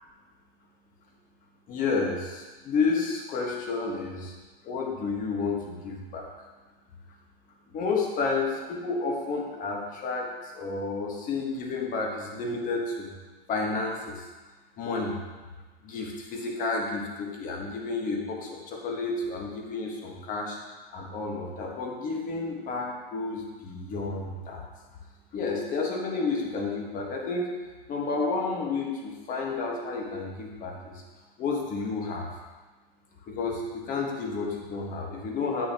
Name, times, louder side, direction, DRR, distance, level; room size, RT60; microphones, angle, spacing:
voice 1, 1.7-4.3 4.6-6.3 7.7-13.1 13.5-14.3 14.8-15.2 15.8-20.6 20.9-24.6 25.3-27.6 27.9-31.0 31.4-32.3 33.2-35.7, left 4 dB, 25° left, 0 dB, 1.4 m, -31 dB
8.1 x 6.6 x 2.9 m, 1.3 s
hypercardioid pair, 120°, 30 cm